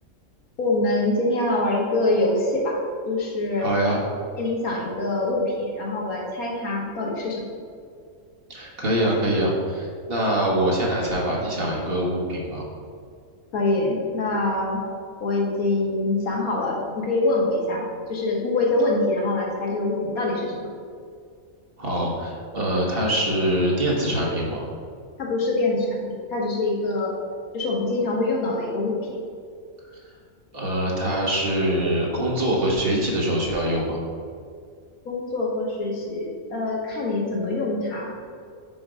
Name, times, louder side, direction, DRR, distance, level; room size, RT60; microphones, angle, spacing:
voice 1, 0.6-2.8 3.1-3.7 4.4-7.5 13.5-14.9 15.2-20.7 25.2-27.1 27.5-29.2 35.1-38.1, left 2 dB, 85° left, -1 dB, 1.7 m, -24 dB
voice 2, 3.6-4.0 8.5-12.6 21.8-24.6 29.9-30.0 30.5-34.0, right 1 dB, 45° right, -3 dB, 1.4 m, -24 dB
6.0 x 5.0 x 4.9 m, 2.2 s
omnidirectional pair, 1.5 m